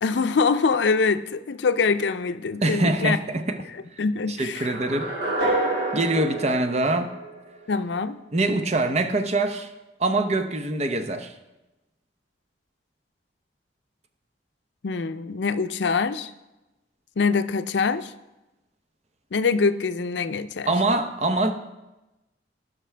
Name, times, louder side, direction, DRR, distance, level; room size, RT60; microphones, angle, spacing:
voice 1, 0.0-3.2 4.0-4.7 7.7-8.2 14.8-16.3 17.2-18.1 19.3-20.7, left 4 dB, 85° left, 12 dB, 0.5 m, -24 dB
voice 2, 2.6-3.6 4.3-5.1 5.9-7.1 8.3-9.7 10.0-11.3 20.7-21.5, right 2 dB, 40° right, 7 dB, 0.7 m, -24 dB
sound 1, 4.5-7.6, right 2 dB, 60° right, 2.2 m, -28 dB
17.5 x 5.9 x 3.4 m, 1.0 s
head